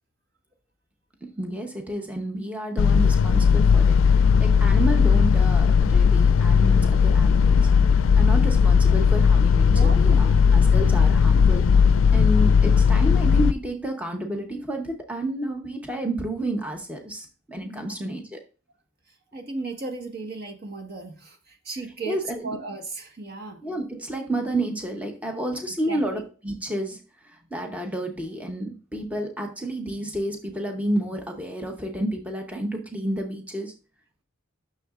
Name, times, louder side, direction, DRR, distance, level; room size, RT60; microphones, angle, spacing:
voice 1, 1.2-18.4 22.1-22.6 23.6-33.7, right 1 dB, 5° right, 2 dB, 0.8 m, -30 dB
sound 1, 2.8-13.5, left 6 dB, 75° left, 0.4 m, -17 dB
voice 2, 9.7-10.5 17.6-18.0 19.3-23.6 25.9-26.2, right 3 dB, 50° right, 3 dB, 1.5 m, -36 dB
9.8 x 6.4 x 2.5 m, 0.36 s
head